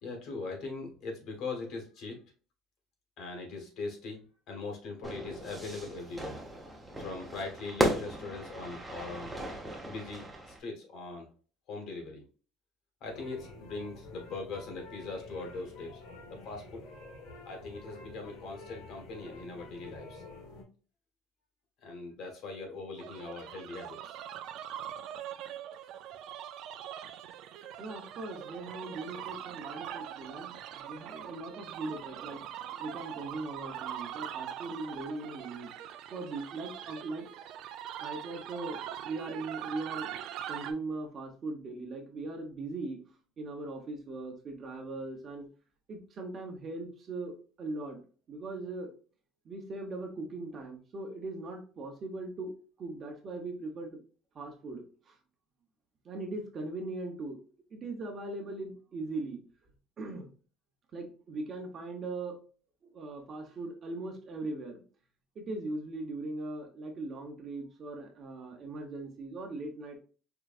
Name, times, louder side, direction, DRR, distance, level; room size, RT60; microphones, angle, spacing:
voice 1, 0.0-2.2 3.2-6.4 7.0-9.4 9.8-11.3 11.7-12.2 13.0-16.0 16.3-16.8 17.4-20.2 21.8-24.2, left 3 dB, 55° left, 2 dB, 1.5 m, -41 dB
Fire / Fireworks, 5.0-10.6, right 1 dB, 5° right, 0.8 m, -36 dB
sound 1, 13.0-20.6, left 2 dB, 85° left, 1.7 m, -49 dB
sound 2, 23.0-40.7, right 10 dB, 60° right, 0.4 m, -42 dB
voice 2, 27.8-32.4 32.7-35.7 36.1-37.3 38.0-40.2 40.5-43.0 43.4-45.5 45.9-48.0 48.3-48.9 49.4-52.5 52.8-54.0 54.3-55.2 56.0-57.4 57.7-59.4 60.0-60.3 60.9-62.4 62.8-64.8 65.3-69.9, right 2 dB, 30° right, 2 dB, 0.9 m, -39 dB
4.7 x 3.1 x 2.4 m, 0.38 s
cardioid pair, 155°, 0 cm